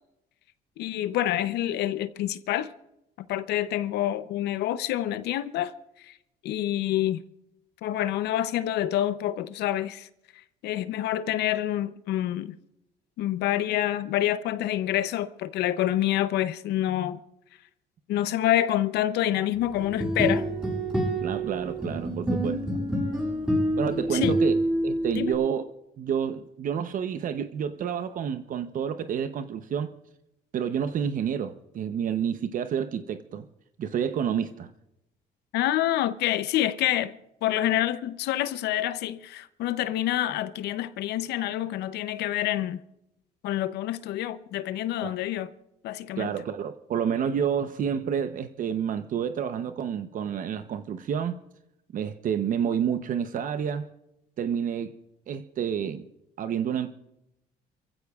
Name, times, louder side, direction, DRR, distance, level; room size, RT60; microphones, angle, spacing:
voice 1, 0.8-2.7 3.3-5.7 6.0-6.1 6.4-7.2 7.8-10.1 10.6-12.5 13.2-17.2 18.1-20.5 24.1-24.4 25.1-25.3 35.5-42.8 43.4-45.5 45.8-46.3, left 13 dB, 80° left, 0.7 m, -27 dB
sound 1, 19.8-25.3, right 1 dB, 5° right, 6.9 m, -27 dB
voice 2, 21.2-22.6 23.8-24.6 24.8-25.7 26.0-29.9 30.5-33.4 33.8-34.7 45.0-45.1 46.2-51.4 51.9-53.9 54.4-54.9 55.3-56.1 56.4-56.9, right 8 dB, 55° right, 0.8 m, -29 dB
28.0 x 15.0 x 2.4 m
cardioid pair, 110°, 17 cm